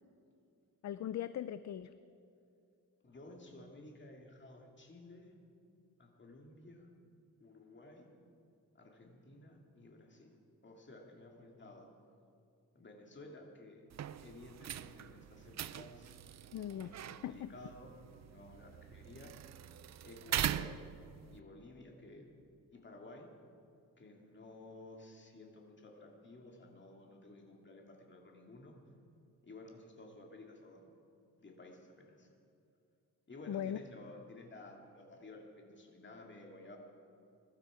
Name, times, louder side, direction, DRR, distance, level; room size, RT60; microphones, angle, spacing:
voice 1, 0.8-1.9 16.5-17.5 33.5-33.8, left 10 dB, 50° left, 13 dB, 0.4 m, -40 dB
voice 2, 3.0-5.3 6.0-6.9 7.4-8.1 8.7-10.3 10.6-11.9 12.7-13.8 14.2-16.2 16.8-19.3 20.0-20.9 21.3-22.3 22.7-23.3 24.0-28.8 29.4-30.9 31.4-32.3 33.3-36.8, left 2 dB, 30° left, 1 dB, 2.2 m, -54 dB
sound 1, 13.9-21.4, right 10 dB, 50° right, 0.4 m, -42 dB
21.5 x 12.0 x 5.0 m, 2.6 s
wide cardioid pair, 135°, 36 cm